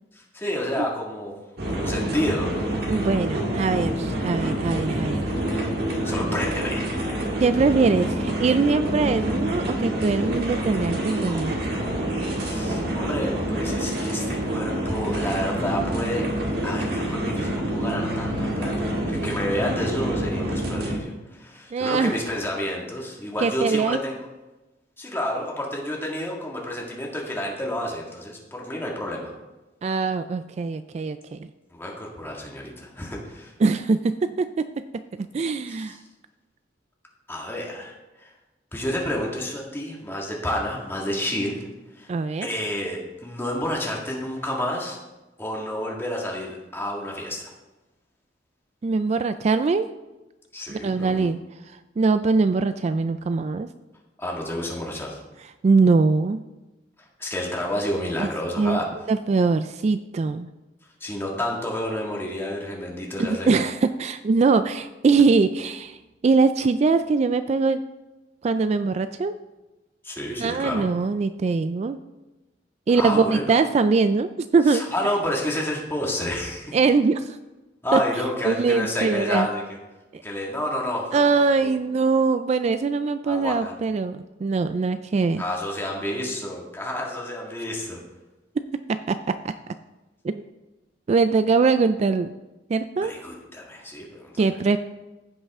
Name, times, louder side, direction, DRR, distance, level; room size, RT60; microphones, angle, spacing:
voice 1, 0.1-1.3 1.7-2.5 6.0-6.8 12.4-16.3 16.6-24.2 25.0-29.3 31.7-33.5 35.7-36.0 37.3-38.3 38.7-41.7 42.0-42.1 42.4-45.0 45.4-47.5 50.5-51.3 54.2-55.2 57.2-58.9 61.0-63.6 70.0-70.9 72.9-73.4 74.7-76.8 77.8-79.6 80.2-81.7 83.3-83.7 85.4-88.0 93.0-94.4, left 1 dB, 15° left, -2 dB, 1.9 m, -30 dB
sound 1, 1.6-21.0, right 1 dB, 65° right, 1.7 m, -27 dB
voice 2, 2.9-5.3 7.4-11.8 21.7-22.2 23.4-24.0 29.8-31.5 33.6-34.7 34.9-35.9 42.1-42.5 48.8-49.9 50.7-51.4 52.0-53.7 55.6-56.4 58.2-58.3 58.6-58.8 59.1-60.5 63.2-66.0 66.2-67.8 68.4-69.4 70.4-72.0 72.9-74.8 76.7-77.4 77.9-78.0 78.4-79.5 80.1-80.2 81.1-85.4 88.9-89.5 90.2-90.4 91.1-92.3 92.7-93.1 94.4-94.8, right 4 dB, 40° right, 11 dB, 0.3 m, -22 dB
15.5 x 5.6 x 3.6 m, 1.1 s
head